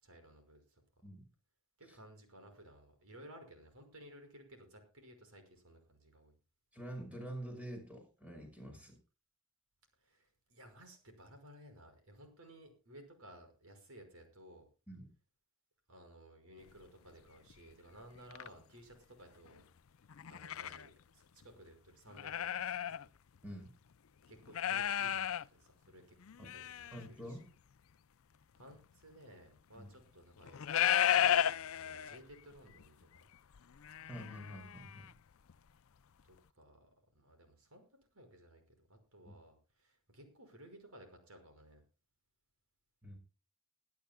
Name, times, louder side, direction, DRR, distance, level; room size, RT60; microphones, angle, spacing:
voice 1, 0.0-0.8 1.8-6.3 10.0-14.7 15.9-19.7 20.3-23.1 24.3-26.2 26.5-26.9 27.3-27.4 28.6-30.9 31.3-33.0 36.2-36.9 37.1-37.8 38.1-41.8, right 1 dB, 80° right, 7 dB, 5.6 m, -57 dB
voice 2, 6.7-9.0 14.9-15.1 23.4-23.7 26.4-26.5 26.9-27.5 29.8-29.9 34.0-35.1 39.3-39.4 43.0-43.2, right 1 dB, 5° right, 3 dB, 5.5 m, -47 dB
sound 1, 16.7-16.8 17.5-17.6 18.2-18.5 20.1-20.9 21.4-21.5 22.1-23.0 23.4-23.5 24.5-25.4 26.2-27.0 28.7-28.8 30.4-32.3 32.7-32.8 33.1-35.1 35.5-35.6, left 10 dB, 70° left, 0.5 m, -34 dB
23.0 x 11.5 x 2.3 m, 0.33 s
head